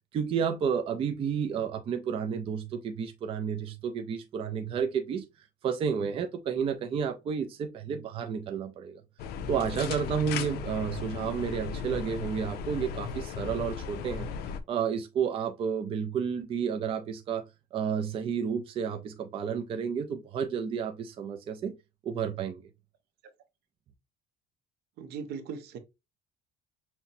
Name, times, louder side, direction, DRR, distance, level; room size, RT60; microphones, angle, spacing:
voice 1, 0.1-5.2 5.6-9.0 9.5-14.3 14.7-17.4 17.7-21.7 22.0-22.6, right 7 dB, 30° right, 0.4 m, -31 dB
sound 1, 9.2-14.6, left 6 dB, 70° left, 0.6 m, -36 dB
voice 2, 25.0-25.8, right 6 dB, 70° right, 0.8 m, -38 dB
5.7 x 2.1 x 2.7 m
cardioid pair, 175°, 17 cm